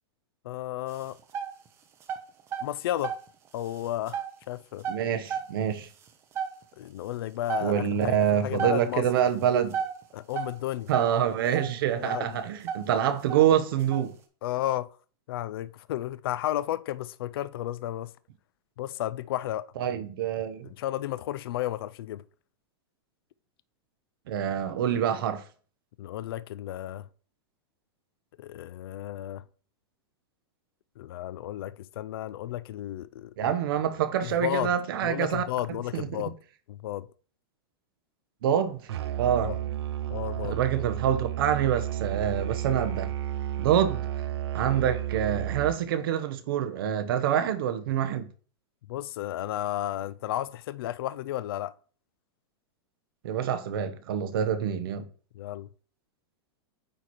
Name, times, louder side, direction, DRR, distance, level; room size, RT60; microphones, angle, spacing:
voice 1, 0.4-1.2 2.6-3.2 3.5-4.9 6.8-9.0 10.1-10.9 12.0-12.4 14.4-14.9 15.3-18.1 18.8-20.0 20.6-22.2 26.0-27.1 28.4-29.4 31.0-33.3 34.2-34.7 35.0-36.4 36.7-37.1 39.4-39.6 40.1-40.6 48.9-51.7 55.3-55.7, left 13 dB, 65° left, 0.4 m, -33 dB
sound 1, 0.9-1.7 2.0-3.3 3.7-4.3 4.8-5.7 6.1-6.2 6.4-6.6 7.2-7.3 7.5-7.8 8.0-8.1 8.6-8.9 9.7-10.6 10.9-12.4 12.6-13.0 13.3-14.1, right 7 dB, 20° right, 0.6 m, -32 dB
voice 2, 4.9-5.9 7.6-9.8 10.9-14.1 19.8-20.7 24.3-25.4 33.4-35.4 35.9-36.3 38.4-38.8 39.2-39.5 40.4-43.1 43.6-44.1 44.5-48.3 53.2-55.0, right 9 dB, 60° right, 0.9 m, -26 dB
Musical instrument, 38.9-45.9, right 12 dB, 75° right, 0.5 m, -32 dB
8.9 x 3.1 x 4.2 m
supercardioid pair, 165°, 14 cm